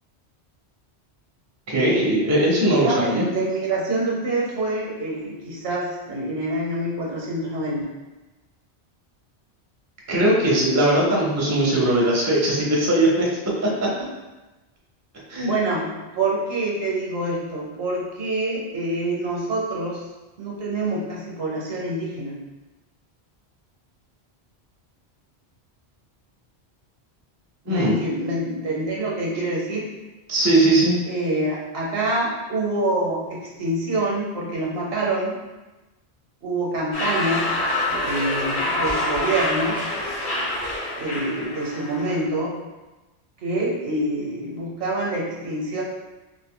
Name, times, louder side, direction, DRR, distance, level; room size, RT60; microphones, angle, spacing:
voice 1, 1.7-3.3 10.1-13.3 15.3-15.5 27.7-28.0 30.3-31.0, right 1 dB, 20° right, -4 dB, 0.5 m, -19 dB
voice 2, 2.8-7.9 15.4-15.9 16.1-20.0 20.4-22.4 27.7-29.9 31.1-35.3 36.4-39.8 41.0-42.5 43.4-45.8, right 2 dB, 65° right, -3 dB, 0.9 m, -26 dB
sound 1, 36.9-42.2, left 1 dB, 50° left, 1.0 m, -26 dB
2.6 x 2.4 x 3.6 m, 1.1 s
omnidirectional pair, 1.1 m